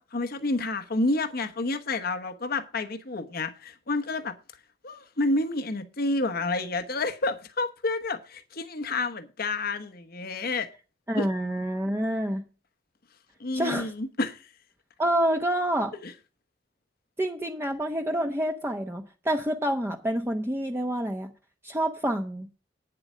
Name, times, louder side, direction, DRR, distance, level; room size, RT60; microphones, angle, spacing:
voice 1, 0.0-4.4 4.8-10.7 11.2-11.3 13.4-14.5 16.0-16.1, left 2 dB, 55° left, 1.0 m, -29 dB
voice 2, 11.1-12.4 13.5-13.9 15.0-15.9 17.2-21.3 21.6-22.5, right 1 dB, 15° right, 0.8 m, -27 dB
9.5 x 7.7 x 6.1 m
head